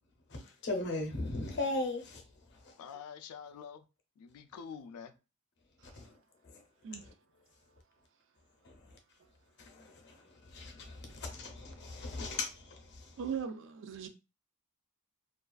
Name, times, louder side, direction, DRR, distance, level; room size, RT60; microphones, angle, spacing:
voice 1, 0.3-2.7 5.8-6.2 6.4-6.6 6.9-7.1 8.6-9.0 9.6-13.2, left 2 dB, 50° left, 0.7 m, -39 dB
voice 2, 2.8-3.9 4.2-5.1, left 7 dB, 80° left, 0.3 m, -47 dB
voice 3, 13.2-14.1, right 7 dB, 55° right, 0.4 m, -38 dB
2.4 x 2.3 x 2.3 m
head